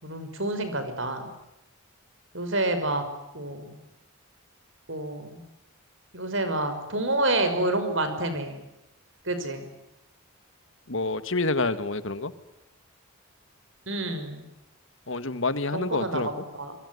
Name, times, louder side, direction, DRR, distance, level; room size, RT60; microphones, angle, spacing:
voice 1, 0.0-1.3 2.3-3.0 3.3-3.7 4.9-5.4 6.1-8.6 9.2-9.7 13.9-14.5 15.7-16.8, right 2 dB, 60° right, 9 dB, 5.7 m, -28 dB
voice 2, 10.9-12.3 15.1-16.3, left 2 dB, 60° left, 13 dB, 1.9 m, -27 dB
25.0 x 23.0 x 9.6 m, 0.91 s
head